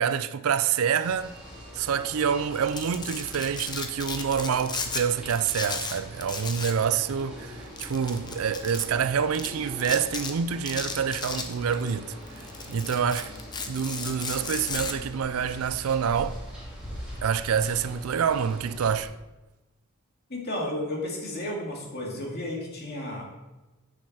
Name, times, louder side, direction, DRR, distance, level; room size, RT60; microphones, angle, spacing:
voice 1, 0.0-1.3 1.7-12.1 12.7-13.3 13.7-16.4 17.2-19.1, right 7 dB, 75° right, 0.4 m, -27 dB
sound 1, 1.0-19.0, equal, 5° right, 2.7 m, -42 dB
Domestic sounds home sounds, 2.5-5.0 5.3-6.8 7.1-7.2 7.8-8.8 9.3-9.5 9.8-10.3 10.7-11.9 12.3-14.9, left 4 dB, 20° left, 0.7 m, -34 dB
voice 2, 20.3-23.2, left 1 dB, 45° left, 2.3 m, -33 dB
9.5 x 6.5 x 4.3 m
head